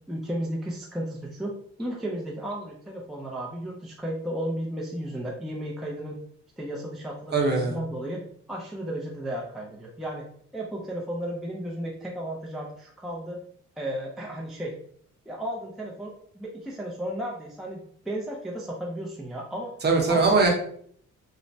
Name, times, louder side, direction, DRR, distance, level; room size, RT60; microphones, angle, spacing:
voice 1, 0.1-6.2 6.6-8.2 8.5-10.2 10.5-13.4 13.8-14.7 15.3-19.7 20.1-20.2, right 1 dB, ahead, -3 dB, 0.4 m, -34 dB
voice 2, 7.3-7.7 19.8-20.5, right 3 dB, 35° right, 0 dB, 0.8 m, -21 dB
3.1 x 2.0 x 2.6 m, 0.62 s
cardioid pair, 90°, 30 cm